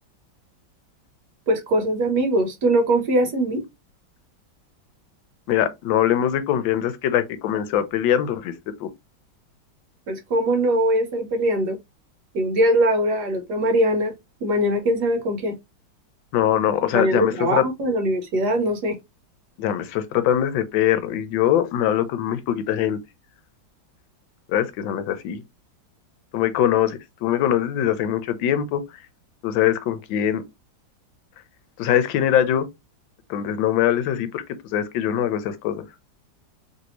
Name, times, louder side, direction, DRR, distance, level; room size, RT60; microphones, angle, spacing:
voice 1, 1.5-3.6 10.1-11.8 12.3-14.1 14.4-15.6 16.9-19.0, right 1 dB, 65° right, 1.2 m, -21 dB
voice 2, 5.5-8.5 8.8-8.9 16.3-17.7 19.6-23.0 24.5-25.4 26.3-28.8 29.4-30.4 31.8-32.7 33.3-34.4 34.7-35.8, left 10 dB, 80° left, 1.3 m, -22 dB
3.2 x 2.6 x 2.9 m
omnidirectional pair, 2.1 m